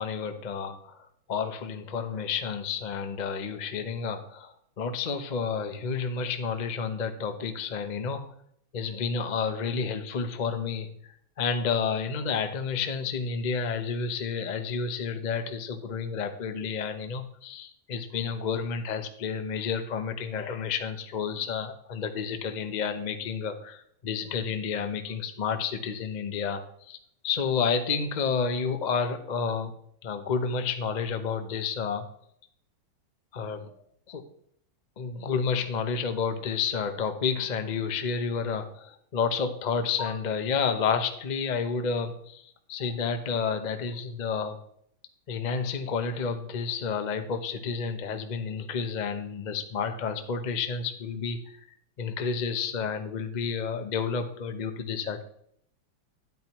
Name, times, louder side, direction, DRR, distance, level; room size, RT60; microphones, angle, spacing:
voice 1, 0.0-8.2 8.7-26.6 26.9-27.0 27.2-29.7 30.0-32.1 33.3-33.7 34.1-34.2 35.0-44.6 45.3-51.4 52.0-55.2, left 5 dB, 60° left, 7 dB, 0.4 m, -30 dB
10.5 x 8.9 x 3.0 m, 0.67 s
omnidirectional pair, 2.2 m